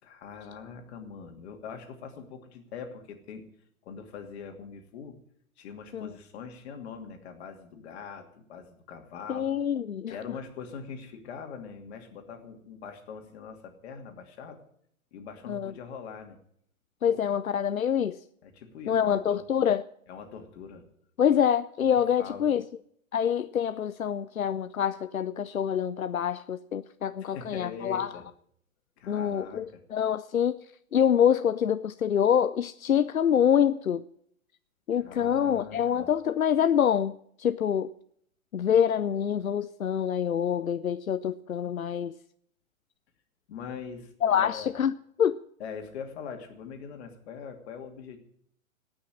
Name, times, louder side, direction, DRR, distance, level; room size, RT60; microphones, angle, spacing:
voice 1, 0.0-3.4 3.8-5.2 5.6-9.5 10.1-14.6 15.1-16.4 17.1-17.2 18.4-19.4 20.1-20.9 21.8-22.5 27.2-28.2 29.0-29.8 35.0-36.1 43.5-44.8 45.6-48.2, left 6 dB, 50° left, 2.8 m, -42 dB
voice 2, 9.3-10.2 15.5-15.7 17.0-18.2 18.9-19.8 21.2-22.7 23.1-28.1 29.1-30.7 30.9-34.1 34.9-37.9 38.5-42.1 44.2-45.4, left 8 dB, 90° left, 0.6 m, -26 dB
18.0 x 6.3 x 9.8 m
figure-of-eight pair, 115°, 41 cm